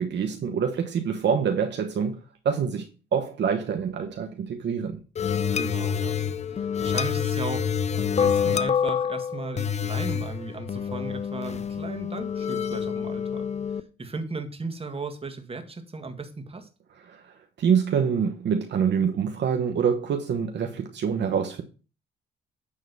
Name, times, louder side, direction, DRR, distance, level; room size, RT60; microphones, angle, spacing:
voice 1, 0.0-5.0 17.0-21.6, right 7 dB, 60° right, 1.1 m, -26 dB
sound 1, 5.1-13.8, left 7 dB, 35° left, 0.6 m, -27 dB
voice 2, 5.5-6.1 6.5-13.4 14.0-16.7, right 3 dB, 30° right, 1.9 m, -36 dB
9.9 x 3.8 x 7.0 m
cardioid pair, 90°, 20 cm